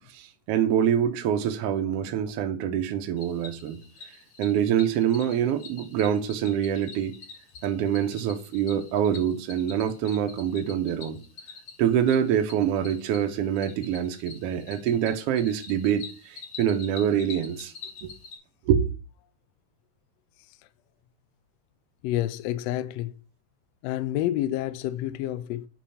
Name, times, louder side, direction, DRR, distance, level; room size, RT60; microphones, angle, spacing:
voice 1, 0.1-3.8 4.4-7.2 7.6-11.2 11.8-17.7 18.0-18.1 18.7-18.9, right 9 dB, 75° right, 1.4 m, -25 dB
Cricket, 3.2-18.4, left 5 dB, 55° left, 1.3 m, -46 dB
voice 2, 22.0-23.1 23.8-25.7, left 13 dB, 90° left, 1.5 m, -29 dB
8.5 x 3.1 x 5.7 m
omnidirectional pair, 3.5 m